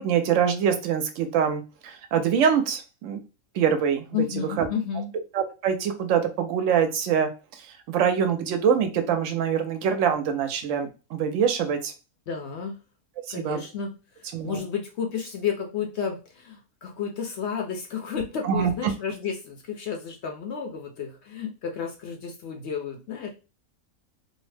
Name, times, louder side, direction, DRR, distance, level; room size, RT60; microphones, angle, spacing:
voice 1, 0.0-3.2 3.5-4.1 4.6-4.7 5.3-11.9 13.3-13.6 14.3-14.6 18.4-18.9, right 7 dB, 70° right, 7 dB, 0.9 m, -24 dB
voice 2, 4.1-5.1 12.3-12.8 13.3-13.9 14.2-23.3, left 7 dB, 65° left, 2 dB, 0.8 m, -32 dB
2.7 x 2.0 x 3.2 m, 0.31 s
omnidirectional pair, 1.5 m